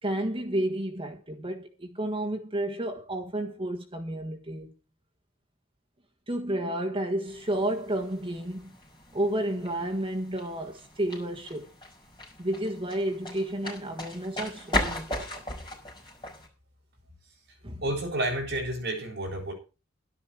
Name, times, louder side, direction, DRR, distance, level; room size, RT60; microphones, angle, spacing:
voice 1, 0.0-4.7 6.3-8.8 9.1-11.7 12.4-15.4 17.6-17.8, right 1 dB, 25° right, 1.6 m, -31 dB
sound 1, 7.3-16.5, left 1 dB, 25° left, 5.8 m, -37 dB
voice 2, 17.8-19.5, right 1 dB, 55° right, 8.0 m, -30 dB
13.0 x 12.0 x 4.8 m
head